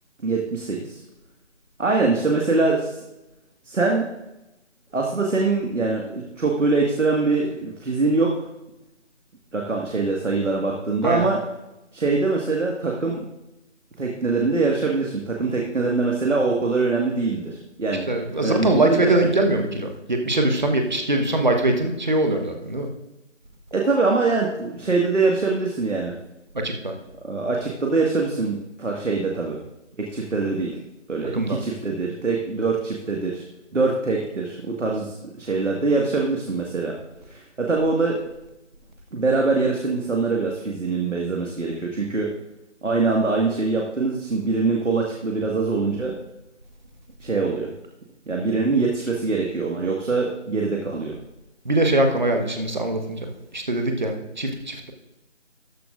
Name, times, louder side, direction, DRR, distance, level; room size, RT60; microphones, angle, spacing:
voice 1, 0.2-1.0 1.8-3.0 3.6-4.0 4.9-8.3 9.5-11.4 11.9-13.3 14.0-18.1 18.4-19.3 23.7-26.1 27.2-29.6 30.0-30.8 31.1-33.4 33.7-36.9 37.3-38.2 39.1-42.3 42.8-46.1 47.2-47.7 48.3-51.2, right 3 dB, 80° right, -1 dB, 1.9 m, -23 dB
voice 2, 18.1-22.9 26.5-26.9 31.3-31.6 51.6-54.9, right 1 dB, 40° right, 4 dB, 1.2 m, -22 dB
13.5 x 10.5 x 2.5 m, 0.95 s
figure-of-eight pair, 175°, 36 cm